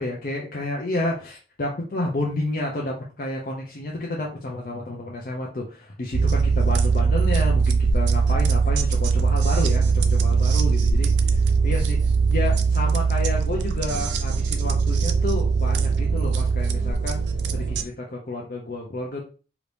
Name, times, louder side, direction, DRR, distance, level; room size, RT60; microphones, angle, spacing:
voice 1, 0.0-11.4 11.6-12.0 12.3-17.2 17.5-19.2, left 2 dB, 50° left, -2 dB, 0.6 m, -30 dB
sound 1, 6.1-17.8, right 5 dB, 80° right, 0.4 m, -21 dB
2.9 x 2.6 x 3.3 m, 0.36 s
head